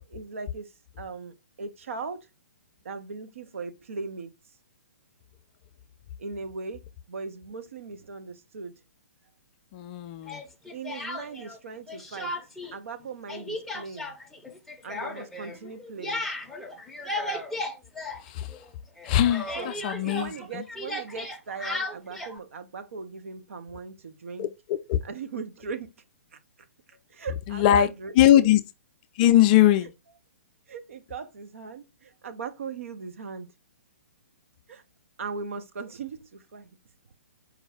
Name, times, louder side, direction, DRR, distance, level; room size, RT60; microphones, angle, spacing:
voice 1, 0.0-2.3 2.8-4.3 6.2-6.8 7.1-8.8 10.7-12.3 12.7-14.1 14.8-16.2 19.6-19.7 20.0-24.5 25.0-25.9 26.3-26.4 27.1-28.5 30.7-33.5 34.7-34.8 35.2-36.7, right 5 dB, 60° right, 0.7 m, -39 dB
voice 2, 9.7-10.4 18.2-18.5 19.0-20.6 24.4-25.0 27.5-27.9 28.2-28.6 29.2-29.9, left 12 dB, 35° left, 0.4 m, -21 dB
Speech, 10.3-11.6 11.9-12.7 13.0-18.7 19.0-22.4, left 1 dB, 5° left, 0.7 m, -35 dB
4.8 x 2.3 x 3.5 m
figure-of-eight pair, 120°, 8 cm